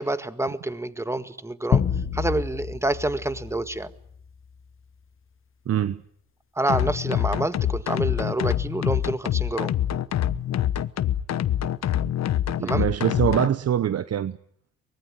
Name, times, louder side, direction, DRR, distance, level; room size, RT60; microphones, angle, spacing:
voice 1, 0.0-1.8 2.1-3.9 6.6-9.8 12.6-12.9, right 2 dB, 10° right, 1.7 m, -27 dB
sound 1, 1.7-4.5, left 7 dB, 45° left, 1.6 m, -28 dB
voice 2, 5.7-6.0 12.6-14.4, right 10 dB, 55° right, 1.0 m, -24 dB
sound 2, 6.7-13.5, left 11 dB, 60° left, 1.2 m, -25 dB
23.5 x 20.0 x 9.8 m
cardioid pair, 90°, 30 cm